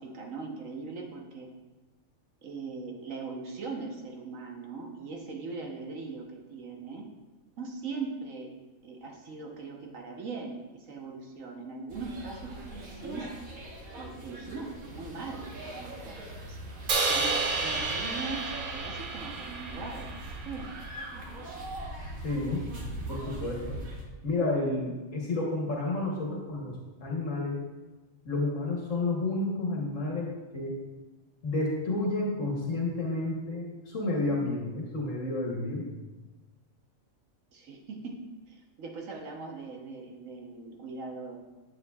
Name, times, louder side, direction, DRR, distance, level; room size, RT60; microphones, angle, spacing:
voice 1, 0.0-1.5 2.4-7.1 7.6-8.5 8.8-13.3 13.9-16.6 17.1-20.1 20.4-20.7 37.5-38.2 38.5-41.4, right 4 dB, 70° right, 1 dB, 1.4 m, -40 dB
sound 1, 11.9-24.0, right 1 dB, 85° right, 1.7 m, -41 dB
Crash cymbal, 16.9-21.1, right 3 dB, 50° right, 0.7 m, -31 dB
voice 2, 22.2-22.6 23.1-23.8 24.2-27.6 28.2-30.8 31.4-35.9, left 2 dB, 65° left, -3 dB, 1.5 m, -31 dB
9.4 x 7.5 x 2.3 m, 1.2 s
omnidirectional pair, 1.4 m